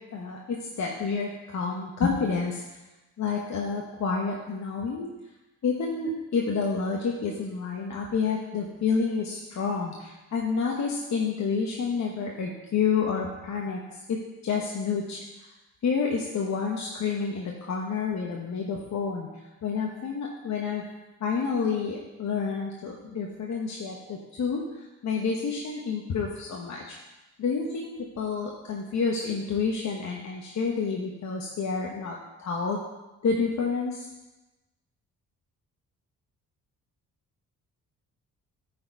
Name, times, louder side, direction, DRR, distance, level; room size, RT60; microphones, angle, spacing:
voice 1, 0.1-2.6 3.2-5.1 5.6-15.5 15.8-19.3 19.6-20.8 21.2-24.6 25.0-27.0 27.4-32.8 33.2-34.1, left 5 dB, 55° left, -1 dB, 1.1 m, -29 dB
9.3 x 4.3 x 4.6 m, 1.1 s
cardioid pair, 80°, 33 cm